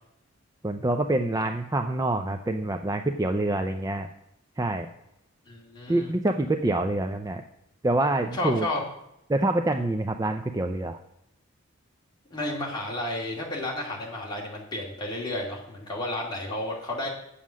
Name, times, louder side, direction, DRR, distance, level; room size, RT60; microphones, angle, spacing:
voice 1, 0.6-4.1 4.6-4.9 5.9-7.4 7.8-8.7 9.3-11.0, right 2 dB, 15° right, 6 dB, 0.4 m, -26 dB
voice 2, 5.5-6.1 8.3-8.8 12.3-17.1, left 1 dB, 20° left, -3 dB, 2.3 m, -32 dB
8.4 x 7.4 x 6.2 m, 0.81 s
head